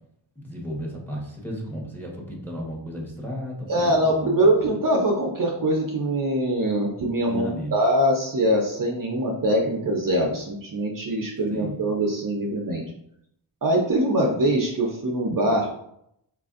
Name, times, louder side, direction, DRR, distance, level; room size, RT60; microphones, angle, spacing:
voice 1, 0.4-4.5 7.3-7.7 11.5-11.8, equal, 5° left, -2 dB, 0.9 m, -34 dB
voice 2, 3.7-12.8 13.6-15.7, right 1 dB, 45° right, 0 dB, 0.6 m, -23 dB
4.6 x 2.5 x 2.4 m, 0.74 s
wide cardioid pair, 95°, 47 cm